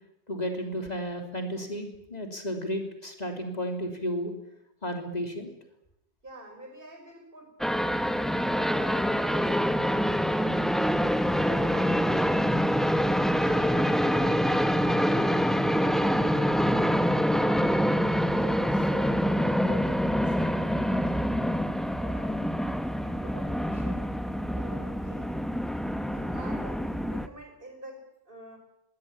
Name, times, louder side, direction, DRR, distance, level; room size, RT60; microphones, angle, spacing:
voice 1, 0.3-4.3 4.8-5.5, equal, 40° left, 4 dB, 3.4 m, -33 dB
voice 2, 6.2-10.2 13.4-17.9 18.3-22.5 23.0-25.3 26.1-28.6, right 1 dB, 55° right, 4 dB, 5.7 m, -47 dB
sound 1, 7.6-27.3, equal, ahead, 0.8 m, -26 dB
23.0 x 16.5 x 8.8 m, 0.84 s
omnidirectional pair, 1.1 m